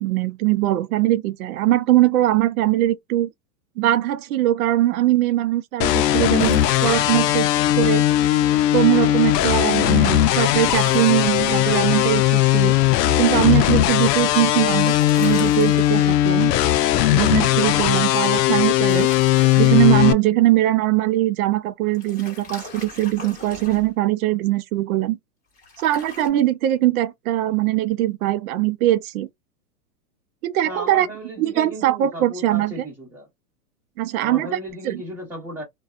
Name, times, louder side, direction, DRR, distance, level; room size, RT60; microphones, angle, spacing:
voice 1, 0.0-3.3 3.8-7.5 7.8-8.1 8.7-12.7 13.2-16.5 17.1-19.1 19.6-25.2 25.8-29.3 30.4-31.1 31.4-32.7 34.0-34.6 34.8-35.0, right 14 dB, 65° right, 0.5 m, -21 dB
sound 1, 5.8-20.1, left 14 dB, 85° left, 0.5 m, -18 dB
sound 2, 6.4-7.3 10.4-11.6 14.0-16.4 18.6-20.1 21.9-23.9 25.6-26.3, left 3 dB, 15° left, 1.3 m, -39 dB
voice 2, 30.6-33.3 34.1-35.6, right 1 dB, 5° right, 1.3 m, -35 dB
2.4 x 2.2 x 2.3 m
supercardioid pair, 150°, 47 cm